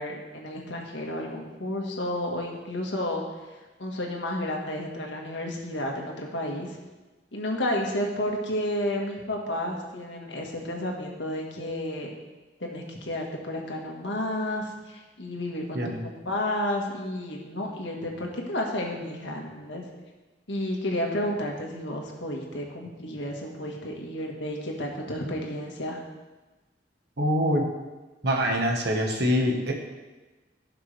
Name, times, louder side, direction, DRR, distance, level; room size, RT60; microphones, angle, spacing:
voice 1, 0.0-3.2 3.8-6.8 7.3-12.1 12.6-19.8 20.5-26.0, left 1 dB, 90° left, 0 dB, 1.8 m, -31 dB
voice 2, 27.2-27.7 28.2-29.7, equal, 65° right, 1 dB, 1.5 m, -24 dB
15.5 x 5.9 x 3.5 m, 1.2 s
head